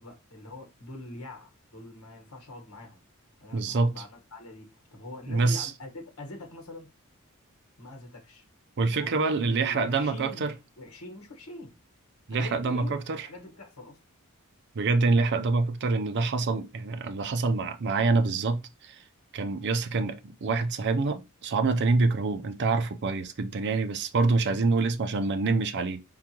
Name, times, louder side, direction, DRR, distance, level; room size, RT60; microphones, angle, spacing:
voice 1, 0.0-3.0 3.4-6.9 7.8-8.4 8.9-10.4 10.8-11.8 12.3-13.0 13.2-14.0 24.5-24.6, left 2 dB, 85° left, 1.4 m, -44 dB
voice 2, 3.5-3.9 5.3-5.7 8.8-10.6 12.3-13.3 14.7-19.1 19.3-26.0, right 3 dB, 55° right, 0.5 m, -26 dB
4.6 x 3.8 x 2.9 m
head